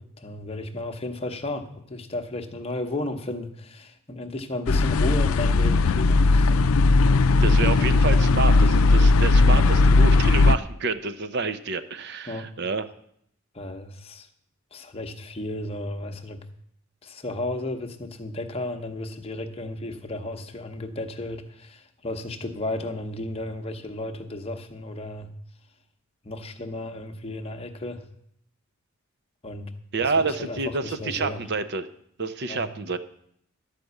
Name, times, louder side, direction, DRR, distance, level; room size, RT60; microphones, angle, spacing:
voice 1, 0.0-6.7 12.3-12.5 13.5-14.3 14.7-16.4 17.0-25.3 26.2-28.1 29.4-29.7 30.0-31.4 32.5-32.7, left 2 dB, 30° left, 5 dB, 0.9 m, -34 dB
sound 1, 4.7-10.6, left 3 dB, 80° left, 0.4 m, -18 dB
voice 2, 7.4-12.9 29.9-31.9 32.2-33.0, right 4 dB, 50° right, 11 dB, 0.6 m, -28 dB
12.0 x 5.1 x 8.1 m, 0.70 s
head